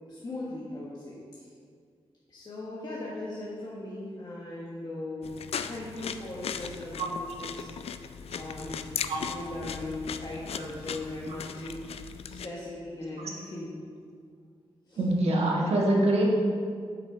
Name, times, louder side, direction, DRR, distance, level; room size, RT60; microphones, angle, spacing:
voice 1, 0.1-1.5 2.3-7.7 8.3-11.9 12.3-13.7 14.9-15.0, left 2 dB, 40° left, -7 dB, 1.4 m, -39 dB
sound 1, 5.2-12.5, left 7 dB, 75° left, 0.4 m, -38 dB
voice 2, 15.0-16.2, right 1 dB, 80° right, -2 dB, 1.4 m, -24 dB
8.0 x 6.5 x 3.7 m, 2.1 s
wide cardioid pair, 115°, 10 cm